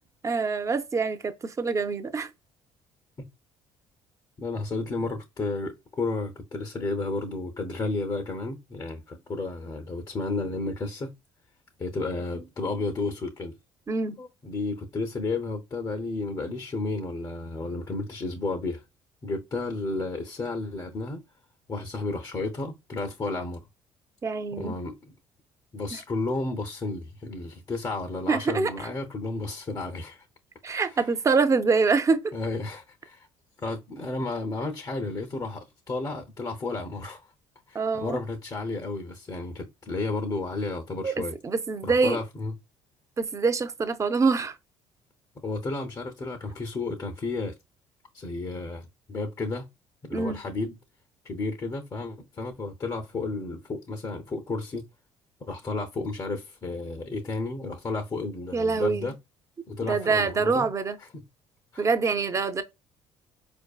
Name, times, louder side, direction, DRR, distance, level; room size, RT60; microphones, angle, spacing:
voice 1, 0.2-2.3 13.9-14.2 24.2-24.8 25.9-26.0 28.3-28.7 30.6-32.3 37.7-38.2 41.0-41.1 41.4-42.2 43.2-44.5 50.1-50.4 58.5-59.1 59.8-61.0 61.8-62.6, right 4 dB, 30° right, 0.5 m, -25 dB
voice 2, 4.4-11.1 11.8-13.5 14.2-18.8 19.2-21.2 21.7-23.6 24.5-25.1 25.7-30.3 30.7-31.1 32.3-33.3 33.6-37.3 37.7-41.3 41.8-42.5 45.4-47.5 48.1-49.7 50.0-50.8 51.2-54.9 55.4-59.1 59.7-60.7 61.0-61.1 61.7-61.9, left 3 dB, 35° left, 0.7 m, -32 dB
4.4 x 2.6 x 2.3 m
supercardioid pair, 75°, 11 cm